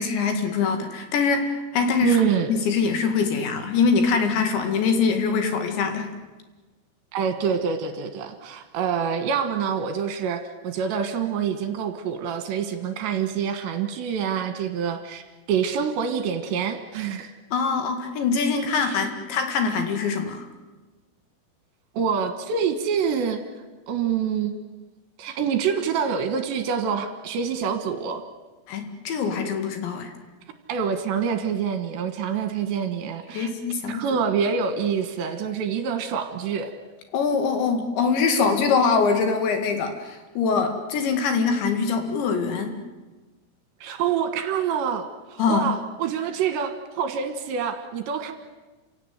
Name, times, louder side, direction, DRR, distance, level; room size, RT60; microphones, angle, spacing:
voice 1, 0.0-2.2 2.5-6.1 17.5-20.5 28.7-30.1 33.3-34.0 37.1-42.7 45.4-45.7, left 5 dB, 65° left, 6 dB, 4.1 m, -23 dB
voice 2, 2.0-2.5 7.1-17.3 18.7-19.0 21.9-23.4 23.9-24.6 25.2-28.2 30.7-33.5 33.9-36.7 43.8-48.3, right 7 dB, 70° right, 8 dB, 3.4 m, -26 dB
28.5 x 17.0 x 9.4 m, 1.2 s
omnidirectional pair, 5.9 m